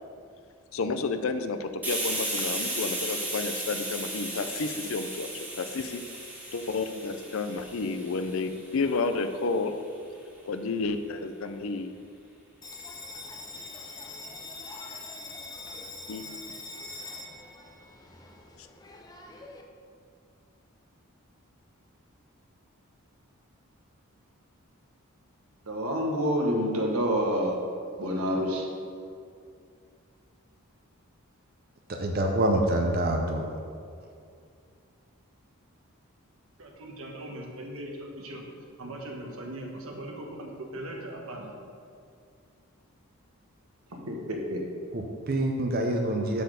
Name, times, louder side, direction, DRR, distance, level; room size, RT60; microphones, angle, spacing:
voice 1, 0.7-6.0 6.5-9.7 10.5-11.9 16.1-16.3 18.6-18.7, left 3 dB, 70° left, 9 dB, 0.5 m, -31 dB
Hiss, 1.8-9.2, right 1 dB, 10° right, 1.2 m, -35 dB
Bell, 12.6-19.6, left 3 dB, 15° left, 0.5 m, -43 dB
voice 2, 25.7-27.5 28.0-28.6 44.0-44.6, equal, 90° right, 0 dB, 1.4 m, -27 dB
voice 3, 31.9-33.4 44.9-46.4, right 1 dB, 45° right, 2 dB, 0.6 m, -26 dB
voice 4, 36.6-38.4 38.8-41.5, right 1 dB, 70° right, 0 dB, 1.3 m, -39 dB
8.3 x 4.2 x 6.7 m, 2.3 s
head